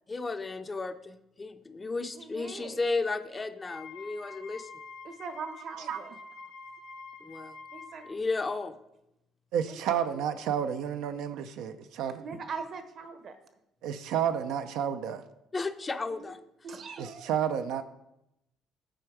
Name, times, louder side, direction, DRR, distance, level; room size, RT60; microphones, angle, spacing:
voice 1, 0.1-4.7 7.2-7.5 8.0-8.8 15.5-16.4, left 3 dB, 25° left, 10 dB, 0.5 m, -34 dB
voice 2, 2.1-2.8 5.0-6.2 7.7-8.1 9.9-10.0 12.2-13.4 16.2-16.3 16.6-17.3, right 5 dB, 50° right, 9 dB, 0.9 m, -41 dB
Wind instrument woodwind instrument, 3.6-8.1, left 4 dB, 80° left, 1.7 m, -47 dB
voice 3, 9.5-12.2 13.8-15.2 17.0-17.8, right 9 dB, 80° right, 8 dB, 0.4 m, -31 dB
7.7 x 4.6 x 4.8 m, 0.85 s
supercardioid pair, 90°, 0 cm